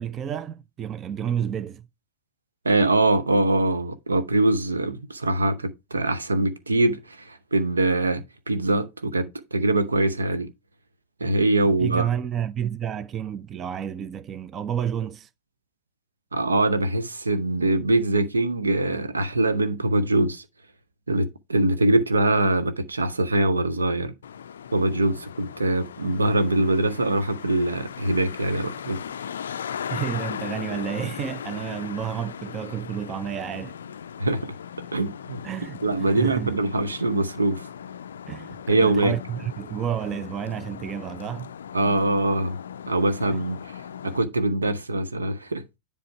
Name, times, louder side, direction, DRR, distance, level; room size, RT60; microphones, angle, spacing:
voice 1, 0.0-1.9 11.6-15.3 29.9-33.8 35.4-36.5 38.3-41.5, right 9 dB, 25° right, 0.5 m, -30 dB
voice 2, 2.6-10.5 11.2-12.1 16.3-20.4 21.1-24.1 24.7-29.0 34.2-34.5 34.9-35.4 35.8-37.6 38.7-39.1 41.7-42.6 42.9-43.8 44.0-45.6, right 2 dB, 75° right, 0.7 m, -23 dB
Traffic noise roadway noise, 24.2-44.2, left 8 dB, 65° left, 0.4 m, -38 dB
10.0 x 3.4 x 4.4 m
figure-of-eight pair, 90°, 0 cm